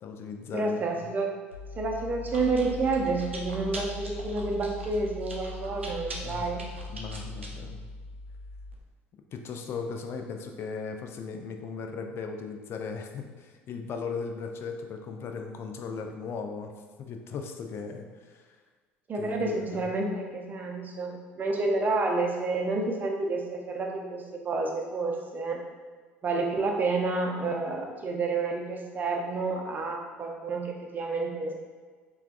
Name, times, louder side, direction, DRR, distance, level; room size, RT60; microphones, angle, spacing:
voice 1, 0.0-0.8 6.2-6.5 6.9-7.9 9.3-16.7 17.0-18.4 19.1-19.9, left 5 dB, 40° left, 5 dB, 0.4 m, -37 dB
voice 2, 0.5-1.3 1.8-6.6 19.1-25.6 26.2-31.5, right 3 dB, 30° right, 1 dB, 0.6 m, -29 dB
Chewing mastication, 1.5-8.8, left 1 dB, 85° right, 0.4 m, -39 dB
4.4 x 2.3 x 2.5 m, 1.5 s
figure-of-eight pair, 60°, 6 cm